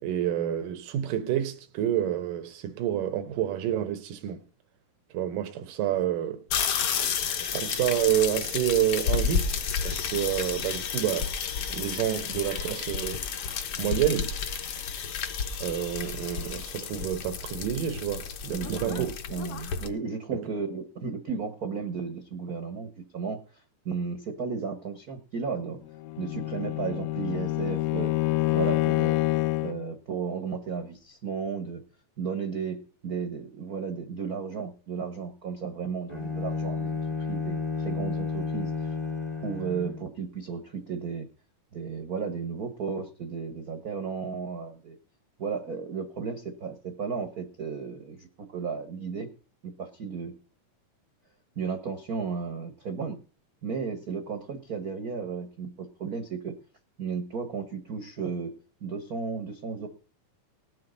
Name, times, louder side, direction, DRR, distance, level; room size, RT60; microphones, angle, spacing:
voice 1, 0.0-4.4 5.1-6.4 7.4-11.3 11.7-13.2 13.8-14.3 15.6-19.1 20.3-20.5, right 11 dB, 90° right, 2.6 m, -28 dB
sound 1, 6.5-19.9, left 7 dB, 60° left, 1.7 m, -31 dB
voice 2, 18.4-23.4 23.8-25.8 26.2-28.1 28.5-29.2 29.6-31.8 32.2-37.0 37.3-38.9 39.4-41.3 41.7-45.0 45.4-49.3 49.6-50.4 51.5-53.2 53.6-56.6 57.0-58.5 58.8-59.9, right 5 dB, 65° right, 0.9 m, -34 dB
Bowed string instrument, 25.9-29.8, left 18 dB, 75° left, 1.7 m, -27 dB
Bowed string instrument 2, 36.1-40.1, left 4 dB, 30° left, 0.5 m, -32 dB
19.5 x 7.6 x 3.9 m
omnidirectional pair, 3.7 m